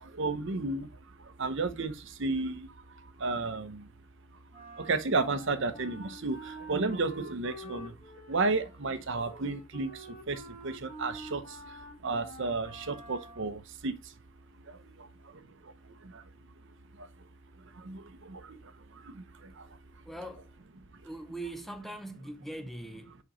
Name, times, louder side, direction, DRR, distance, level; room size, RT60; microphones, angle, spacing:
voice 1, 0.2-0.9 1.4-1.9 2.2-2.6 3.2-3.8 4.9-6.4 6.7-7.9 8.3-9.9 10.3-10.4 10.6-11.4 12.0-13.9 17.9-18.0 18.3-18.4, right 3 dB, 60° right, 0.8 m, -31 dB
Wind instrument woodwind instrument, 4.5-13.5, right 1 dB, 30° left, 2.3 m, -47 dB
voice 2, 20.1-20.5 21.0-23.2, right 1 dB, ahead, 0.5 m, -41 dB
6.4 x 5.0 x 3.1 m
head